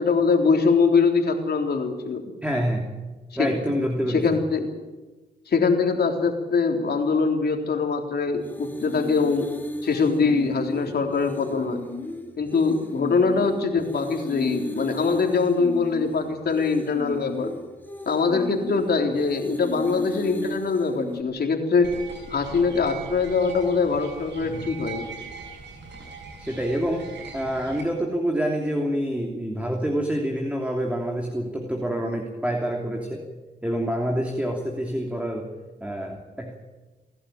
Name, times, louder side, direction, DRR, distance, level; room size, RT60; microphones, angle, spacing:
voice 1, 0.0-2.2 3.3-3.5 4.1-4.8 5.5-9.5 9.8-11.8 12.4-17.5 18.1-21.9 22.3-25.1, left 4 dB, 60° left, 3 dB, 3.6 m, -23 dB
voice 2, 2.4-2.9 3.4-4.3 26.4-27.1 27.3-33.2 33.6-35.5 35.8-36.5, equal, 5° right, 1 dB, 3.1 m, -27 dB
sound 1, 8.4-21.2, left 1 dB, 10° left, 3.2 m, -35 dB
sound 2, 21.8-27.8, right 4 dB, 75° right, 6.0 m, -40 dB
29.0 x 11.5 x 9.1 m, 1.2 s
cardioid pair, 70°, 19 cm